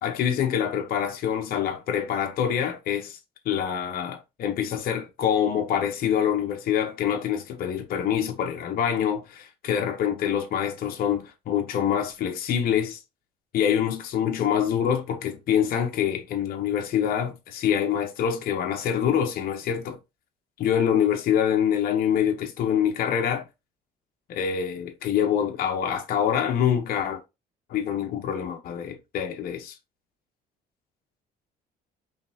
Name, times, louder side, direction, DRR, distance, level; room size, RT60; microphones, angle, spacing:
voice 1, 0.0-3.2 3.5-13.0 13.5-20.0 20.6-23.4 24.3-27.2 27.7-29.8, left 9 dB, 60° left, 0.9 m, -25 dB
5.1 x 3.3 x 2.8 m
cardioid pair, 110°, 17 cm